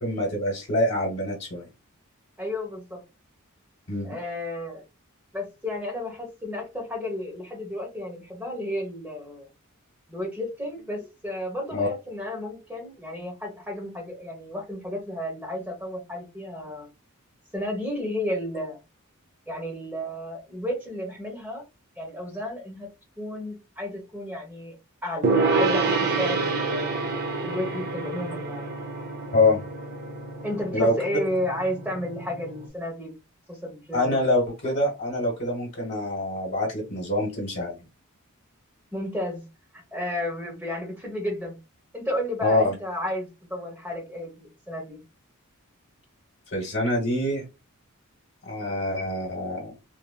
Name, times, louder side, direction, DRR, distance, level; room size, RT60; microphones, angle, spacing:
voice 1, 0.0-1.6 3.9-4.2 11.7-11.9 29.3-29.6 30.7-30.9 33.9-37.8 42.4-42.7 46.5-47.4 48.4-49.7, left 1 dB, 50° left, 1.1 m, -25 dB
voice 2, 2.4-3.0 4.0-4.8 5.3-9.5 10.1-16.9 17.5-18.8 19.5-21.6 22.0-22.9 23.2-24.7 25.0-27.1 27.4-28.7 30.4-33.2 33.5-34.2 38.9-39.4 39.7-41.6 41.9-45.0, left 1 dB, 10° right, 0.9 m, -32 dB
Gong, 25.2-32.7, right 3 dB, 45° right, 0.4 m, -28 dB
3.3 x 2.1 x 2.2 m
head